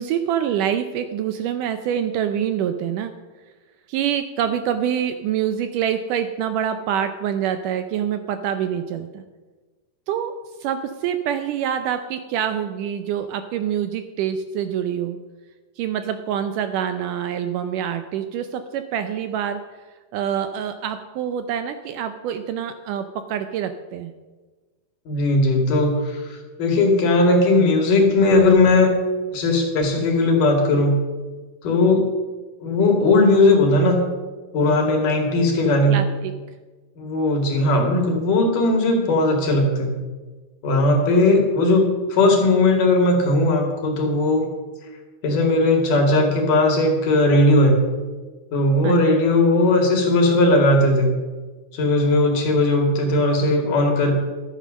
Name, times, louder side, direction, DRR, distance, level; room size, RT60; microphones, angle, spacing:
voice 1, 0.0-3.1 3.9-9.2 10.1-10.3 10.6-15.2 15.8-19.6 20.1-24.1 35.9-36.3 48.8-49.0, right 9 dB, 80° right, 9 dB, 2.0 m, -26 dB
voice 2, 25.1-28.9 29.3-31.0 31.6-32.0 32.6-34.0 34.5-36.0 37.0-40.0 40.6-44.5 45.2-47.8 48.5-51.1 51.7-54.1, left 2 dB, 65° left, 2 dB, 3.6 m, -18 dB
13.0 x 9.1 x 6.2 m, 1.3 s
omnidirectional pair, 4.1 m